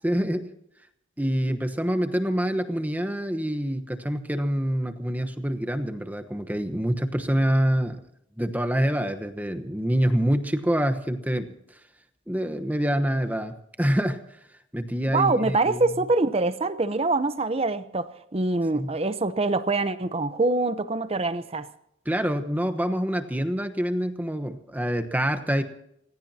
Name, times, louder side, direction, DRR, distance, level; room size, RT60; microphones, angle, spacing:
voice 1, 0.0-0.5 1.2-8.0 8.4-11.5 12.3-14.2 14.7-15.8 18.7-19.0 22.1-25.6, equal, 10° right, 7 dB, 1.1 m, -26 dB
voice 2, 15.1-21.7, right 3 dB, 30° right, 12 dB, 0.8 m, -25 dB
28.5 x 16.5 x 2.9 m, 0.76 s
head